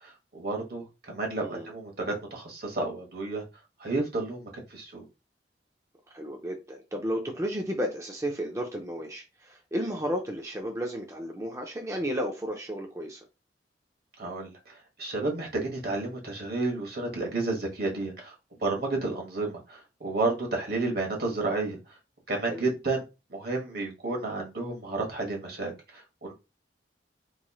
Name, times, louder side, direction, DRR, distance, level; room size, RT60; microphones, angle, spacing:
voice 1, 0.0-3.4 3.8-5.1 14.2-18.3 18.6-21.8 22.3-26.3, right 3 dB, 60° right, 1.3 m, -31 dB
voice 2, 1.4-1.7 6.1-13.2 22.5-22.6, equal, 15° right, 0.6 m, -33 dB
4.3 x 3.1 x 2.3 m
head